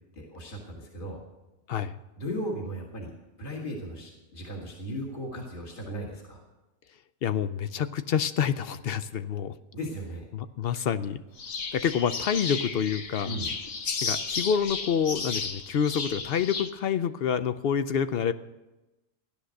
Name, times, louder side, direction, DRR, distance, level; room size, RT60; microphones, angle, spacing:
voice 1, 0.1-1.2 2.2-3.1 3.4-6.4 9.7-10.3 13.2-13.5, equal, 40° left, -1 dB, 2.3 m, -36 dB
voice 2, 1.7-2.0 7.2-9.6 10.3-11.2 11.7-13.4 14.0-18.3, left 7 dB, 55° left, 12 dB, 0.7 m, -27 dB
sound 1, 11.4-16.7, left 5 dB, 75° left, 1.5 m, -33 dB
15.5 x 11.5 x 6.5 m, 1.0 s
omnidirectional pair, 1.4 m